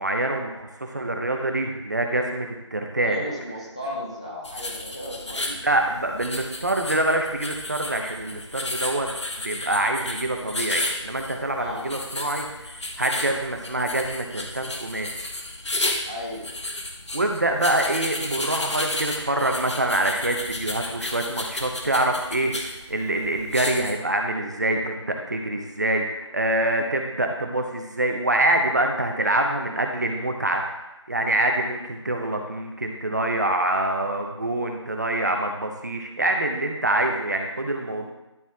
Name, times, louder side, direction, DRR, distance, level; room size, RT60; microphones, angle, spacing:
voice 1, 0.0-3.2 5.5-9.1 9.4-15.1 17.1-30.6 31.1-38.1, right 1 dB, 35° right, 3 dB, 0.8 m, -25 dB
voice 2, 3.0-5.4 11.6-11.9 16.1-16.5, left 1 dB, 10° left, -6 dB, 0.6 m, -34 dB
sound 1, 4.4-23.9, left 2 dB, 65° left, 1.3 m, -33 dB
12.0 x 4.2 x 3.5 m, 0.96 s
figure-of-eight pair, 170°, 16 cm